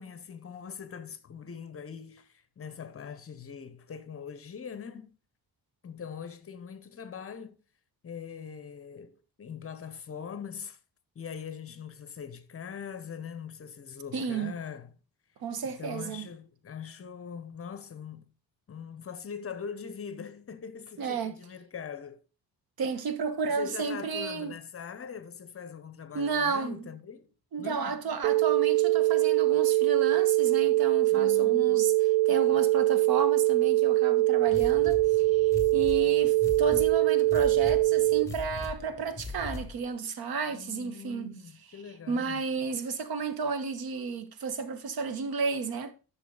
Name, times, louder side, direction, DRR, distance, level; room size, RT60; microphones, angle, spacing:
voice 1, 0.0-5.2 5.8-7.6 8.0-10.8 11.1-14.9 15.6-18.2 18.7-22.2 23.5-27.3 27.6-28.0 31.1-31.8 40.5-42.5, left 7 dB, 35° left, 0.9 m, -42 dB
voice 2, 14.1-14.5 15.4-16.3 21.0-21.3 22.8-24.5 26.1-26.9 27.5-31.9 32.3-41.3 42.1-45.9, right 5 dB, 70° right, 1.3 m, -32 dB
sound 1, 28.2-38.2, right 18 dB, 90° right, 0.5 m, -23 dB
sound 2, 34.5-39.9, left 4 dB, 10° left, 1.9 m, -40 dB
11.0 x 6.3 x 3.9 m
cardioid pair, 145°, 37 cm